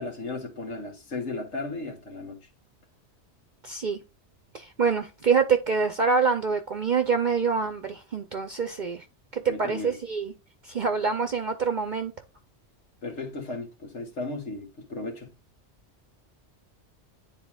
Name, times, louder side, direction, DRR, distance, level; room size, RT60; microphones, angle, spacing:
voice 1, 0.0-2.4 9.5-10.0 13.0-15.3, left 3 dB, 75° left, 1.9 m, -35 dB
voice 2, 3.6-4.0 4.5-9.0 9.3-10.3 10.6-12.1, right 5 dB, 45° right, 0.8 m, -26 dB
10.0 x 4.1 x 2.4 m
omnidirectional pair, 1.2 m